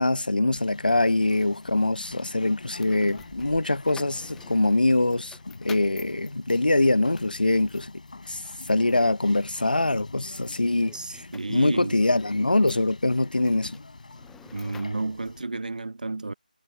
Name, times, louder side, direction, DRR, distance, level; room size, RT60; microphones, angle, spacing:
voice 1, 0.0-7.9 8.3-8.4 8.7-13.8, left 2 dB, 80° left, 1.1 m, -23 dB
Conversation, 0.6-15.4, left 3 dB, 60° left, 7.0 m, -45 dB
sound 1, 0.9-15.8, left 8 dB, 5° left, 6.8 m, -53 dB
voice 2, 10.9-12.0 14.5-16.3, right 3 dB, 65° right, 1.2 m, -31 dB
figure-of-eight pair, 160°, 5 cm